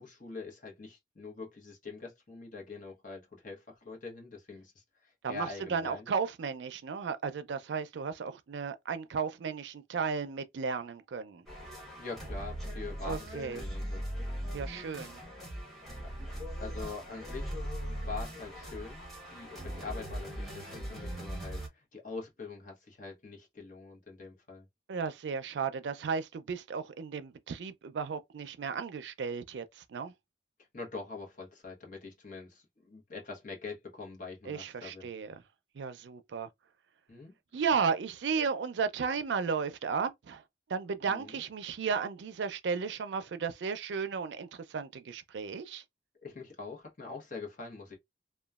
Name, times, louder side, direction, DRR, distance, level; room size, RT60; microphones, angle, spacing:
voice 1, 0.0-6.1 12.0-14.0 16.0-16.1 16.6-17.5 18.0-24.7 30.7-35.1 37.1-37.3 41.0-41.4 46.2-48.0, left 4 dB, 50° left, 1.0 m, -44 dB
voice 2, 5.2-11.4 13.0-13.7 14.5-15.2 24.9-30.1 34.5-35.4 35.7-36.5 37.5-40.4 40.7-45.8, right 5 dB, 85° right, 0.4 m, -34 dB
sound 1, 11.5-21.7, equal, ahead, 1.1 m, -39 dB
3.0 x 2.2 x 2.3 m
head